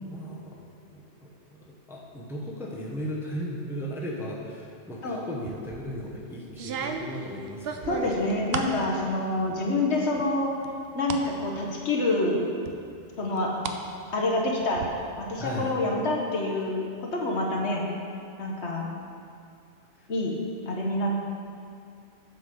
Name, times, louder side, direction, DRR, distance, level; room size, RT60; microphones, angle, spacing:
voice 1, 0.0-0.6 0.9-1.3 1.9-8.1 15.4-15.7 20.0-20.1, equal, ahead, -4 dB, 0.9 m, -36 dB
sound 1, 5.5-5.9 6.5-8.8 9.2-9.8 10.2-11.3 11.7-11.8 12.7-13.8 14.1-14.9, right 6 dB, 60° right, 0.7 m, -35 dB
voice 2, 7.9-10.5 10.9-12.4 13.2-13.5 14.1-14.8 15.2-17.8 18.4-18.9 20.1-20.4 20.7-21.1, left 2 dB, 65° left, -1 dB, 1.3 m, -27 dB
8.2 x 6.1 x 5.0 m, 2.4 s
omnidirectional pair, 1.3 m